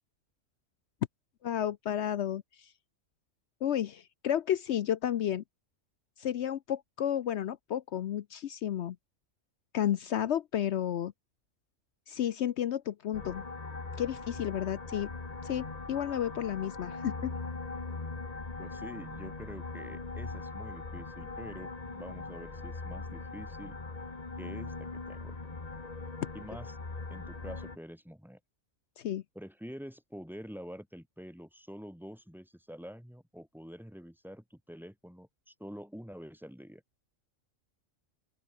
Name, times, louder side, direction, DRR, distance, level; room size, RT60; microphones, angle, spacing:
voice 1, 1.4-2.4 3.6-5.4 6.2-9.0 9.7-11.1 12.1-13.4 14.0-15.1 15.4-17.3 29.0-29.2, left 10 dB, 65° left, 0.9 m, -32 dB
sound 1, 13.1-27.8, left 3 dB, 30° left, 1.7 m, -41 dB
voice 2, 18.6-23.8 24.4-25.4 26.3-26.8 27.1-28.4 29.3-36.8, equal, ahead, 3.1 m, -47 dB
open air
omnidirectional pair, 1.3 m